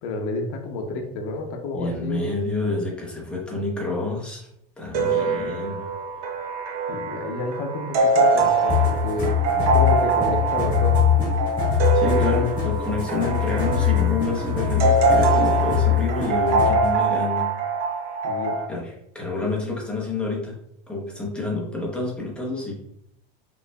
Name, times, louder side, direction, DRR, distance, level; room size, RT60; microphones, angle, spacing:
voice 1, 0.0-2.2 6.9-11.3 18.2-18.6, left 2 dB, 55° left, 4 dB, 0.8 m, -30 dB
voice 2, 1.7-4.5 4.8-5.8 11.7-17.5 18.7-20.6 20.9-22.7, left 3 dB, 5° left, -3 dB, 0.8 m, -28 dB
sound 1, 4.9-18.7, right 3 dB, 50° right, 0.8 m, -23 dB
sound 2, 8.7-16.9, left 9 dB, 25° left, 1.4 m, -23 dB
5.1 x 3.1 x 2.3 m, 0.75 s
supercardioid pair, 160°, 20 cm